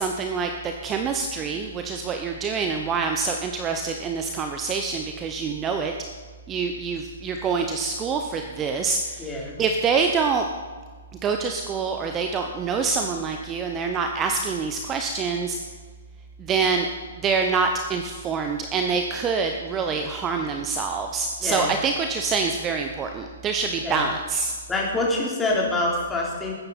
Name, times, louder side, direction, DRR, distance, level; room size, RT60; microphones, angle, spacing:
voice 1, 0.0-5.9 6.5-10.5 11.2-15.6 16.4-16.9 17.2-24.5, right 5 dB, 20° right, 5 dB, 0.8 m, -26 dB
voice 2, 9.2-9.6 21.4-21.7 23.8-24.1 24.7-26.5, left 2 dB, 10° left, -3 dB, 3.4 m, -25 dB
20.0 x 9.9 x 4.2 m, 1.5 s
figure-of-eight pair, 120°, 0 cm